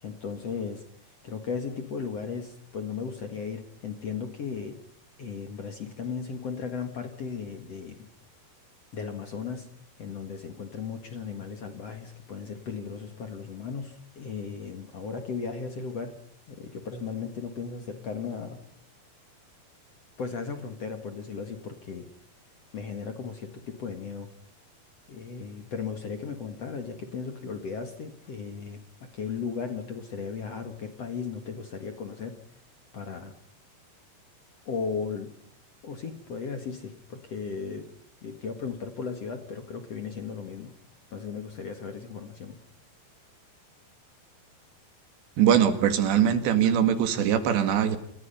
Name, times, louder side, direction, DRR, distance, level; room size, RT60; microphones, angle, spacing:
voice 1, 0.0-0.8 1.2-4.8 5.2-8.1 8.9-9.7 10.0-16.1 16.5-18.6 20.2-22.1 22.7-24.3 25.1-28.8 29.1-32.3 32.9-33.3 34.7-35.3 35.8-37.8 38.2-40.7 41.1-42.6, left 5 dB, 50° left, 6 dB, 2.3 m, -36 dB
voice 2, 45.4-48.0, right 9 dB, 85° right, 9 dB, 4.3 m, -22 dB
28.5 x 27.0 x 5.7 m, 0.64 s
omnidirectional pair, 4.9 m